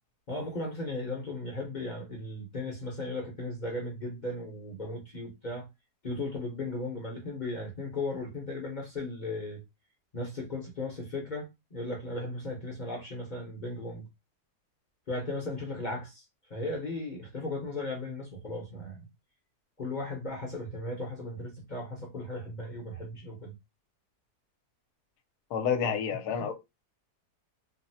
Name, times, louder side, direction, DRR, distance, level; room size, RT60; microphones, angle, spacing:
voice 1, 0.3-5.7 6.0-9.6 10.1-14.1 15.1-16.2 16.5-19.1 19.8-23.5, left 2 dB, 40° left, 0.7 m, -36 dB
voice 2, 25.5-26.5, left 7 dB, 75° left, 1.1 m, -29 dB
3.7 x 2.0 x 2.7 m
omnidirectional pair, 1.8 m